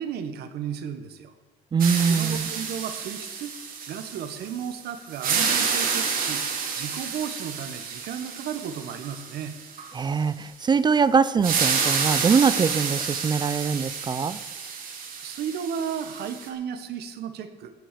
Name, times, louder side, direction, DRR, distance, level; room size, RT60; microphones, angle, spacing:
voice 1, 0.0-1.3 2.0-3.5 3.9-6.4 6.7-9.5 15.2-17.7, right 8 dB, 70° right, 10 dB, 1.2 m, -34 dB
voice 2, 1.7-2.5 9.9-14.4, right 5 dB, 25° right, 16 dB, 0.4 m, -23 dB
sound 1, 1.8-4.7 5.1-9.9 11.4-16.5, right 6 dB, 55° right, 2.0 m, -29 dB
17.5 x 6.2 x 6.8 m, 1.3 s
cardioid pair, 110°, 17 cm